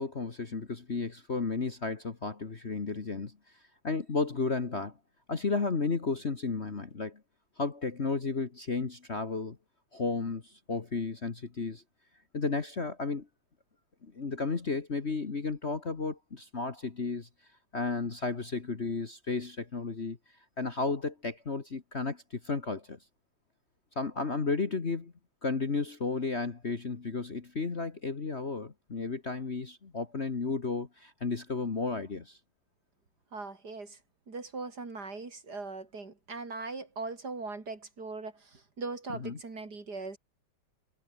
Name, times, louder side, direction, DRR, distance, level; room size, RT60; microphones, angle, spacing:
voice 1, 0.0-3.4 3.8-4.9 5.3-7.2 7.6-9.6 9.9-11.8 12.3-13.3 14.0-17.3 17.7-20.2 20.6-23.0 23.9-25.1 25.4-32.4 39.1-39.4, left 4 dB, 35° left, 1.8 m, -33 dB
voice 2, 33.3-34.0 34.3-40.2, right 3 dB, 50° right, 4.0 m, -40 dB
omnidirectional pair, 2.3 m